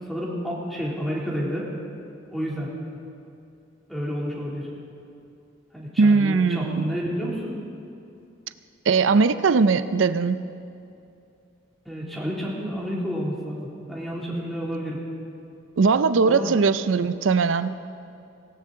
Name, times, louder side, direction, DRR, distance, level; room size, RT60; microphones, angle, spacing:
voice 1, 0.1-1.7 2.3-2.7 3.9-4.7 5.7-7.6 11.9-15.0 16.2-16.5, equal, ahead, -5 dB, 2.7 m, -30 dB
voice 2, 6.0-6.9 8.9-10.5 15.8-17.7, right 4 dB, 70° right, 13 dB, 0.5 m, -20 dB
18.0 x 18.0 x 3.8 m, 2.6 s
head